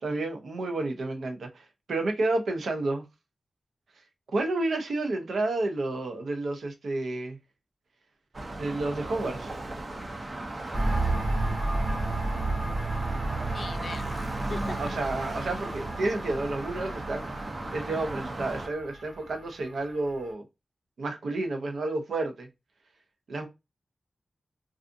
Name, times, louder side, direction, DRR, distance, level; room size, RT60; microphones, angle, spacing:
voice 1, 0.0-3.0 4.3-7.4 8.5-9.5 14.6-17.3 17.7-20.4 21.0-22.5 23.3-23.5, right 2 dB, 85° right, 0.6 m, -30 dB
sound 1, 8.3-18.7, right 2 dB, 40° right, 0.4 m, -36 dB
sound 2, 10.7-20.3, right 2 dB, 65° right, 1.1 m, -32 dB
voice 2, 13.4-14.1 14.5-14.8, left 4 dB, 65° left, 0.3 m, -39 dB
2.5 x 2.4 x 2.5 m
wide cardioid pair, 95°, 0 cm